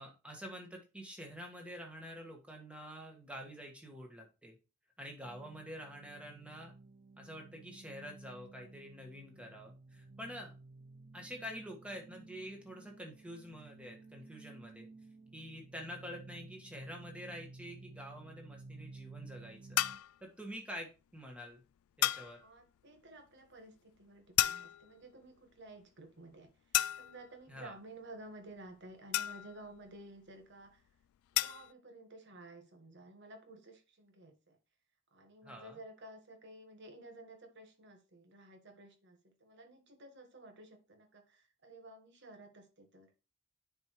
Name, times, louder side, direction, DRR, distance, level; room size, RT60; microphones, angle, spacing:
voice 1, 0.0-4.5 5.0-6.7 7.2-10.5 11.1-14.9 15.3-19.8 20.2-21.6 22.0-22.4 27.5-27.7 35.4-35.8, equal, 5° right, 2 dB, 1.5 m, -47 dB
sound 1, 5.2-20.0, right 3 dB, 30° right, 0.3 m, -54 dB
sound 2, 19.8-20.1 22.0-22.4 24.4-25.0 26.7-27.3 29.1-29.7 31.4-31.7, left 15 dB, 90° left, 0.3 m, -32 dB
voice 2, 22.4-30.8 31.3-34.6 35.1-43.1, right 2 dB, 55° right, 6 dB, 1.4 m, -53 dB
9.5 x 4.5 x 3.1 m, 0.30 s
head